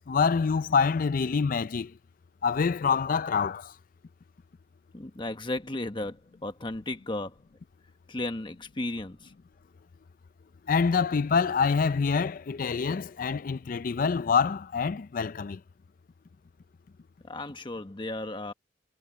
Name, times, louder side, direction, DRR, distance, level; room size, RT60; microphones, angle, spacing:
voice 1, 0.0-1.9 2.4-3.7 10.7-15.6, left 5 dB, 50° left, 0.4 m, -26 dB
voice 2, 4.9-7.3 8.1-9.3 17.2-18.5, left 2 dB, 30° left, 1.2 m, -34 dB
head